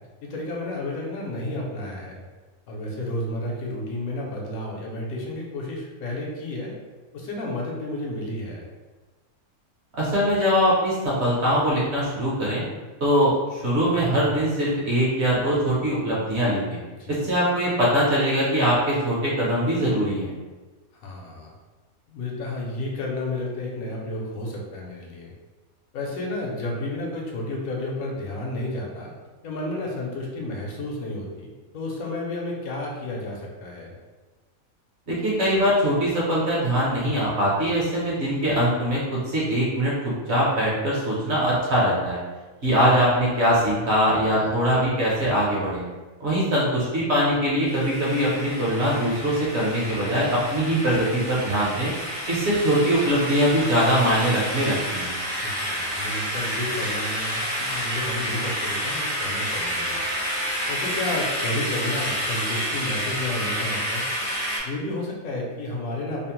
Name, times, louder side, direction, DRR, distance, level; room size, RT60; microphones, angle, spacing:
voice 1, 0.2-2.2 2.7-6.7 7.1-8.6 16.9-17.2 20.9-21.5 22.1-25.3 25.9-29.1 29.4-33.9 44.3-44.6 55.4-60.0 60.7-64.0 64.6-66.3, left 1 dB, 75° left, -2 dB, 1.1 m, -31 dB
voice 2, 10.0-12.6 13.0-16.8 17.1-20.3 35.1-39.0 39.3-42.2 42.6-45.8 46.2-51.9 52.3-55.1, equal, 55° right, -6 dB, 0.9 m, -22 dB
sound 1, 47.7-64.6, equal, 25° left, 0.5 m, -29 dB
2.7 x 2.0 x 2.9 m, 1.3 s
omnidirectional pair, 1.5 m